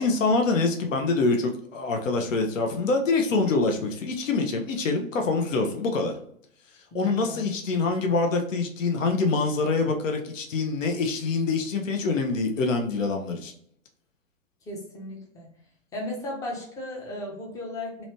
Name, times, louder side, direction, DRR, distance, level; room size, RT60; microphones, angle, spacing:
voice 1, 0.0-6.2 6.9-13.5, left 3 dB, 70° left, 4 dB, 0.8 m, -25 dB
voice 2, 6.9-7.5 14.7-15.5 15.9-18.0, left 1 dB, 10° left, -1 dB, 0.5 m, -36 dB
3.0 x 2.8 x 3.0 m, 0.66 s
figure-of-eight pair, 115°, 40 cm